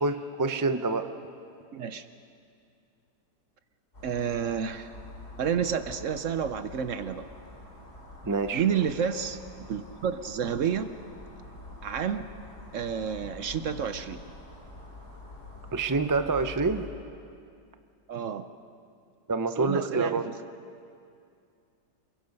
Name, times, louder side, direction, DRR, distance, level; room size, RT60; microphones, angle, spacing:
voice 1, 0.0-1.1 8.3-8.6 15.7-16.8 19.3-20.2, right 3 dB, 30° right, 8 dB, 0.3 m, -27 dB
voice 2, 1.7-2.1 4.0-4.9 5.4-7.3 8.5-9.4 9.7-10.9 11.8-12.3 12.7-14.2 18.1-18.5 19.6-20.4, right 7 dB, 60° right, 11 dB, 0.9 m, -30 dB
sound 1, 3.9-16.9, left 2 dB, 35° left, 4.3 m, -46 dB
28.5 x 22.5 x 5.4 m, 2.4 s
omnidirectional pair, 1.8 m